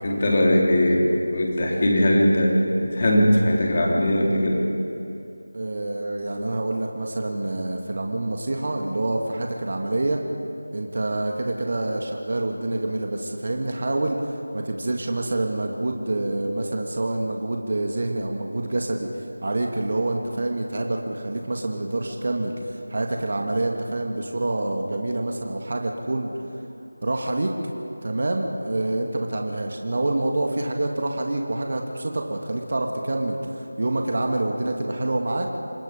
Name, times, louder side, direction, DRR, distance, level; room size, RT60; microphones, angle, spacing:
voice 1, 0.0-4.6, equal, 35° left, -2 dB, 3.7 m, -20 dB
voice 2, 5.5-10.2 10.7-26.3 27.0-27.6 28.0-33.4 33.8-35.5, right 2 dB, 45° right, 2 dB, 1.9 m, -27 dB
27.0 x 19.5 x 5.2 m, 2.7 s
figure-of-eight pair, 170°, 0 cm